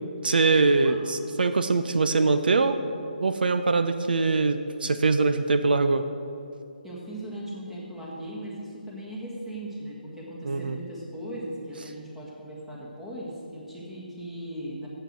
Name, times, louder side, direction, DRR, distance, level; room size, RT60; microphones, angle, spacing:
voice 1, 0.2-2.8 3.2-6.0 10.4-10.8, right 3 dB, 75° right, 9 dB, 0.6 m, -23 dB
voice 2, 6.8-14.9, right 1 dB, 5° right, -7 dB, 1.7 m, -38 dB
7.8 x 6.6 x 7.4 m, 2.6 s
hypercardioid pair, 160°, 5 cm